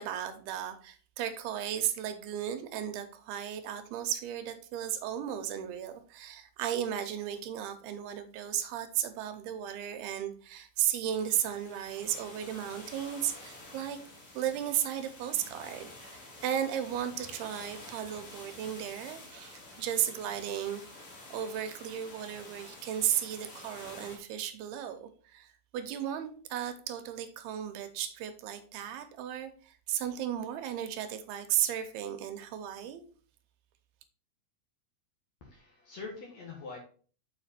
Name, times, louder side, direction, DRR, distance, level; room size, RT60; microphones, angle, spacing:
voice 1, 0.0-14.0 14.3-33.1, right 10 dB, 85° right, 8 dB, 2.7 m, -35 dB
sound 1, 11.0-24.2, left 2 dB, 40° left, 2.2 m, -49 dB
voice 2, 35.4-36.8, left 4 dB, 60° left, 0 dB, 2.1 m, -44 dB
7.3 x 5.0 x 4.3 m, 0.42 s
omnidirectional pair, 4.6 m